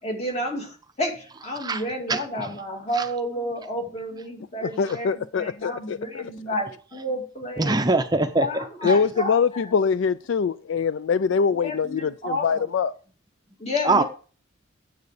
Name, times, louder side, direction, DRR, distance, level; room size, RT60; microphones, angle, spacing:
voice 1, 0.0-7.8 8.4-9.7 11.5-12.7 13.6-14.0, equal, 30° left, 2.3 m, -31 dB
voice 2, 4.6-6.2 8.8-12.9, left 5 dB, 65° left, 0.3 m, -23 dB
voice 3, 7.6-8.5 8.8-8.9 13.8-14.0, right 2 dB, 20° right, 0.6 m, -21 dB
9.4 x 7.7 x 4.9 m
head